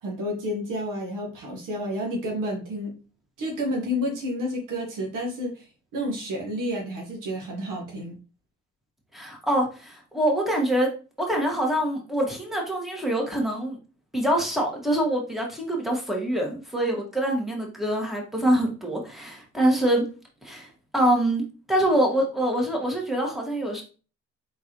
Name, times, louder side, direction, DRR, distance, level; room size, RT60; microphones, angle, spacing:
voice 1, 0.0-2.9 3.4-5.5 5.9-8.1, equal, 80° right, 1 dB, 1.6 m, -30 dB
voice 2, 9.1-10.9 11.2-13.8 14.1-20.0 20.4-23.8, right 1 dB, ahead, 0 dB, 1.7 m, -25 dB
3.9 x 3.8 x 3.1 m, 0.35 s
supercardioid pair, 70°, 31 cm